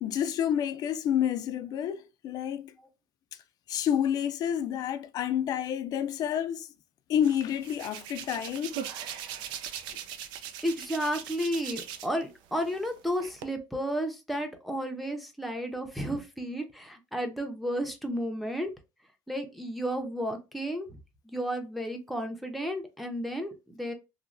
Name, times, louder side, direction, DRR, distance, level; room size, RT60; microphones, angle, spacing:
voice 1, 0.0-2.7 3.7-6.7 7.1-8.8, left 9 dB, 55° left, 0.4 m, -29 dB
Hands, 7.2-12.2 12.5-13.4, right 9 dB, 90° right, 0.4 m, -40 dB
voice 2, 10.6-18.7 19.3-20.9 21.2-23.9, equal, ahead, 0.6 m, -32 dB
3.0 x 2.1 x 2.5 m
cardioid pair, 135°, 8 cm